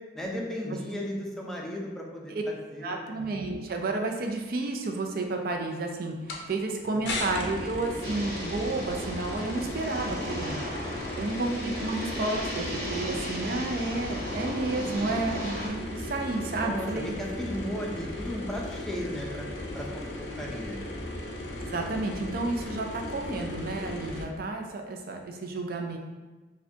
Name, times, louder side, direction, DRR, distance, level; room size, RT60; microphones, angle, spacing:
voice 1, 0.1-3.0 10.8-11.3 16.5-19.5 19.7-20.0 20.4-20.9, equal, 5° left, -2 dB, 0.5 m, -35 dB
voice 2, 2.8-10.6 11.2-17.2 21.7-26.0, right 2 dB, 55° right, 3 dB, 0.5 m, -31 dB
sound 1, 6.3-6.4 7.0-24.2, left 1 dB, 80° left, 0.5 m, -37 dB
sound 2, 8.0-15.7, equal, 80° right, 1.3 m, -36 dB
4.7 x 2.2 x 2.7 m, 1.2 s
head